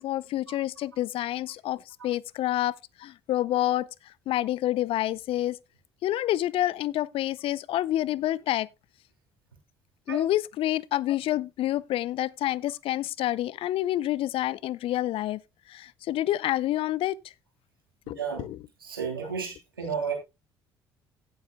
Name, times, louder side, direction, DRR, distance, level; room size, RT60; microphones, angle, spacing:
voice 1, 0.0-5.6 6.0-8.7 10.1-15.4 15.7-17.2 18.1-18.6, left 14 dB, 55° left, 0.5 m, -28 dB
voice 2, 18.1-18.5 18.8-20.1, right 6 dB, 85° right, 3.1 m, -32 dB
16.5 x 7.8 x 2.3 m
figure-of-eight pair, 50°, 12 cm